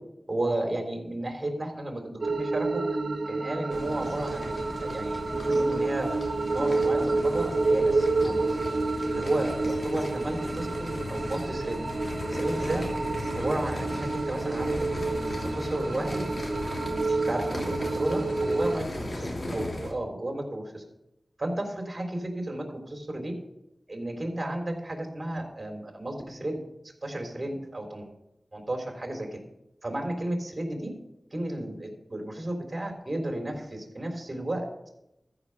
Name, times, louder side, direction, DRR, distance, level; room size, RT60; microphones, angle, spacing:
voice 1, 0.3-2.8 3.3-4.5 4.8-6.2 6.5-8.6 9.1-11.8 12.3-12.9 13.3-14.8 15.3-16.3 17.1-20.8 21.4-23.3 23.9-26.6 27.0-28.1 28.5-29.4 29.8-30.9 31.3-34.6, right 1 dB, 35° right, 3 dB, 3.7 m, -33 dB
sound 1, 2.2-18.8, right 3 dB, 60° right, 1.1 m, -29 dB
sound 2, 3.7-19.9, left 1 dB, 55° left, 3.0 m, -37 dB
14.0 x 5.9 x 6.6 m, 0.86 s
wide cardioid pair, 50°, 0 cm